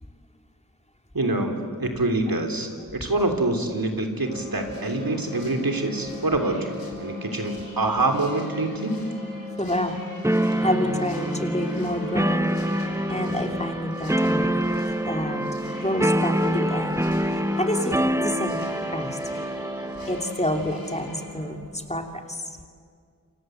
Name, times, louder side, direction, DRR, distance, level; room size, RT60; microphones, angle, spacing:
voice 1, 1.1-9.1, right 2 dB, 80° right, 5 dB, 3.4 m, -26 dB
sound 1, 4.2-21.5, left 2 dB, 35° right, 7.4 m, -39 dB
sound 2, 4.5-21.3, left 2 dB, 75° left, 5.7 m, -48 dB
voice 2, 9.6-10.0 10.6-12.5 13.1-14.6 15.0-15.4 15.8-17.0 17.5-18.6 18.9-19.4 20.1-22.6, left 1 dB, 20° left, 4 dB, 2.8 m, -28 dB
sound 3, 10.2-20.3, right 1 dB, 10° right, 0.8 m, -26 dB
29.0 x 25.5 x 7.9 m, 2.2 s
wide cardioid pair, 50°, 35 cm